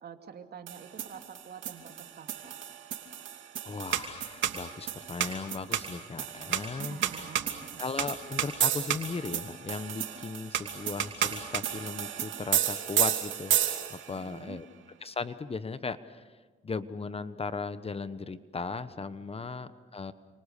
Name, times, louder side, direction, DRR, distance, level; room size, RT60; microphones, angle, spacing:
voice 1, 0.0-2.6 6.8-7.8 14.1-14.6, right 7 dB, 55° right, 6 dB, 2.6 m, -47 dB
sound 1, 0.7-14.2, right 10 dB, 75° right, 2.7 m, -32 dB
voice 2, 3.6-7.0 7.8-13.5 13.9-14.7 15.0-16.2 16.6-20.1, left 4 dB, 30° left, 13 dB, 1.1 m, -37 dB
29.5 x 25.5 x 6.8 m, 1.4 s
cardioid pair, 90°, 20 cm